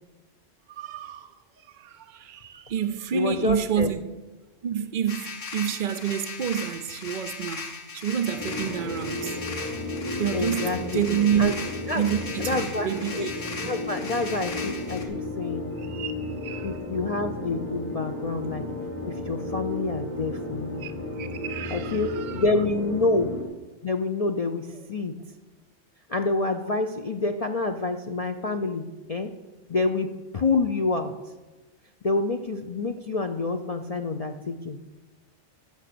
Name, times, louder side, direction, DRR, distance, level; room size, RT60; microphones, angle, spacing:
voice 1, 0.7-1.3 1.7-4.0 4.6-9.3 10.2-11.6 11.9-13.3 15.8-16.7 20.8-20.9 21.2-22.4, right 9 dB, 55° right, 0.5 m, -29 dB
voice 2, 3.1-3.9 10.3-11.0 11.4-11.6 11.9-12.0 12.4-13.3 13.6-15.7 16.6-18.7 19.1-20.8 21.7-23.3 23.8-25.1 26.1-29.3 29.7-30.1 30.3-31.1 32.0-34.8, left 3 dB, 40° left, 0.5 m, -27 dB
sound 1, 5.1-15.1, left 4 dB, 85° left, 1.7 m, -38 dB
sound 2, 8.4-23.4, left 2 dB, 10° left, 1.5 m, -33 dB
15.0 x 5.9 x 6.8 m
omnidirectional pair, 1.2 m